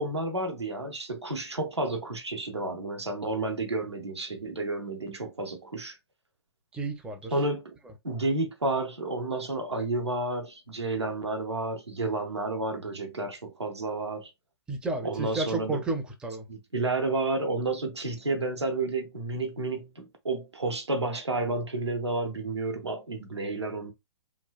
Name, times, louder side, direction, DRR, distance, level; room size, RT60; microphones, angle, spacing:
voice 1, 0.0-6.0 7.3-7.8 8.0-14.3 15.0-15.8 16.5-23.9, right 2 dB, 80° right, 0.8 m, -31 dB
voice 2, 6.7-7.4 7.8-7.9 14.7-16.5, right 2 dB, 5° right, 0.4 m, -32 dB
3.1 x 2.2 x 2.2 m
figure-of-eight pair, 120°, 14 cm